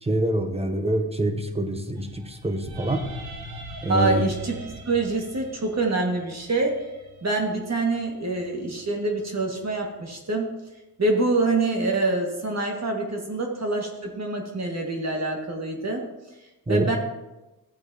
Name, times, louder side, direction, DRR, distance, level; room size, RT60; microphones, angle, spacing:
voice 1, 0.0-3.0 3.8-4.3 16.7-16.9, right 1 dB, 15° right, 6 dB, 1.1 m, -26 dB
sound 1, 2.0-10.1, right 1 dB, 75° right, 1.3 m, -43 dB
voice 2, 3.9-4.6 4.9-6.9 7.2-10.4 11.0-16.1 16.7-17.0, right 2 dB, 45° right, 1 dB, 1.8 m, -25 dB
13.5 x 7.9 x 2.8 m, 1.0 s
cardioid pair, 70°, 37 cm